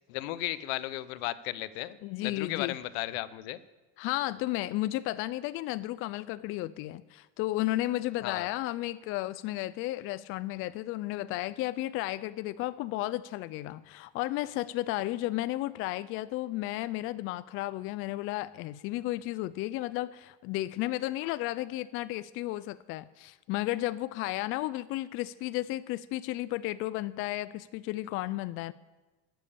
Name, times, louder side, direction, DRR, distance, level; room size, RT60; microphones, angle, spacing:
voice 1, 0.1-3.6 8.2-8.5 21.2-21.3, left 16 dB, 80° left, 16 dB, 0.7 m, -35 dB
voice 2, 2.0-2.7 4.0-28.7, left 16 dB, 45° left, 15 dB, 0.4 m, -33 dB
12.0 x 7.6 x 8.5 m, 1.2 s
cardioid pair, 150°, 30 cm